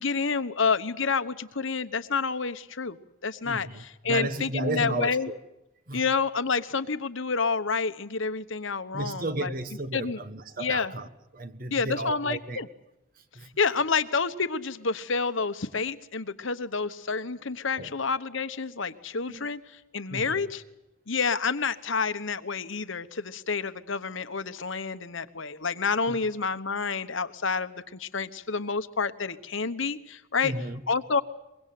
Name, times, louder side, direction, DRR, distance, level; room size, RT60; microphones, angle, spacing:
voice 1, 0.0-3.0 3.2-5.3 5.9-9.5 9.9-10.2 10.6-10.9 11.7-12.7 13.6-20.6 21.1-30.5 30.9-31.2, left 5 dB, 70° left, 1.1 m, -29 dB
voice 2, 3.4-5.4 5.9-6.0 8.9-11.1 11.3-12.6 13.3-13.5 17.8-17.9 19.3-19.5 20.1-20.5 26.1-26.2 30.4-30.8, right 2 dB, 45° right, 1.3 m, -33 dB
24.0 x 22.0 x 7.8 m
head